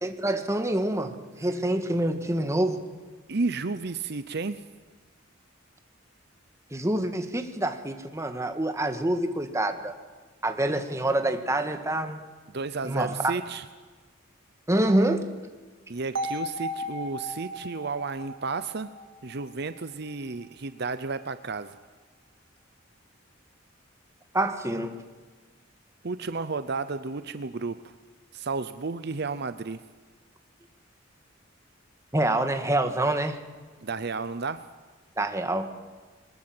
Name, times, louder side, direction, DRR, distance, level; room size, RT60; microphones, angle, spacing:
voice 1, 0.0-2.8 6.7-9.9 10.4-12.2 12.8-13.3 14.7-15.3 24.3-25.0 32.1-33.4 35.2-35.7, right 1 dB, 15° right, 7 dB, 1.7 m, -26 dB
voice 2, 3.3-4.6 12.5-13.6 15.9-18.9 19.2-21.8 26.0-27.8 28.3-29.8 33.8-34.6, right 4 dB, 55° right, 12 dB, 0.8 m, -32 dB
sound 1, 16.2-20.1, equal, 80° right, 2.2 m, -36 dB
22.5 x 20.5 x 7.9 m, 1.4 s
head